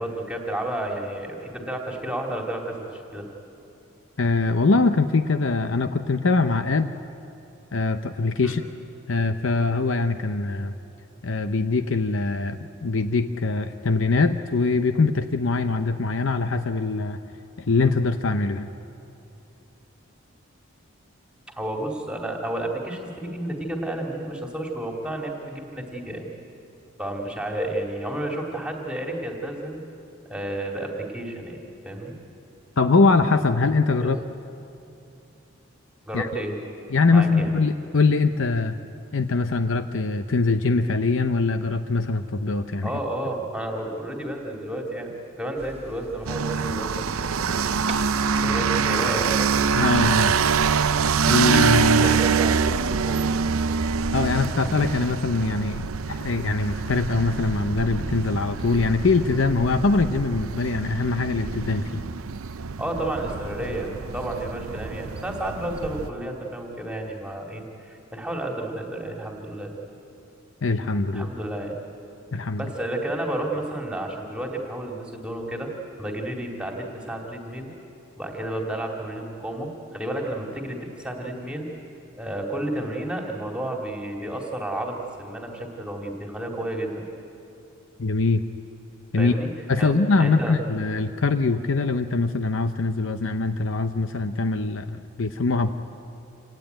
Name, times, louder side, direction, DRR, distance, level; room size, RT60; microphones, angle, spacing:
voice 1, 0.0-3.3 8.4-8.5 21.6-26.3 27.0-29.8 30.3-31.6 31.8-32.1 34.0-34.1 36.1-36.6 37.1-37.5 42.8-45.1 45.4-49.3 52.0-52.6 53.0-53.4 62.8-69.7 71.1-71.8 72.6-75.7 76.0-77.7 78.2-81.7 82.2-87.1 89.2-89.5 89.8-90.6, right 1 dB, 5° right, 0 dB, 2.4 m, -31 dB
voice 2, 4.2-6.9 7.7-8.6 9.1-10.7 11.2-17.2 17.6-18.7 32.8-34.2 36.1-36.3 36.9-38.8 39.1-42.9 49.7-50.4 51.2-52.2 54.1-62.0 70.6-71.3 72.3-72.7 88.0-88.4 89.1-89.3 89.7-95.7, left 3 dB, 65° left, 8 dB, 0.7 m, -23 dB
sound 1, 45.6-55.5, right 2 dB, 30° right, 0.9 m, -44 dB
sound 2, 46.3-66.1, right 6 dB, 90° right, 0.6 m, -25 dB
27.0 x 17.5 x 9.2 m, 2.8 s
head